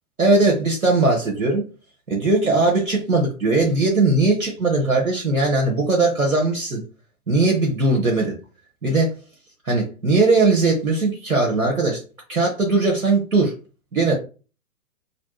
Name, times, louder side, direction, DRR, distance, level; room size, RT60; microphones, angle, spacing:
voice 1, 0.2-1.6 2.1-6.8 7.3-8.3 8.8-9.1 9.6-12.0 12.3-13.5 13.9-14.1, right 3 dB, 85° right, -1 dB, 1.0 m, -19 dB
3.2 x 2.4 x 3.0 m, 0.34 s
figure-of-eight pair, 115°, 42 cm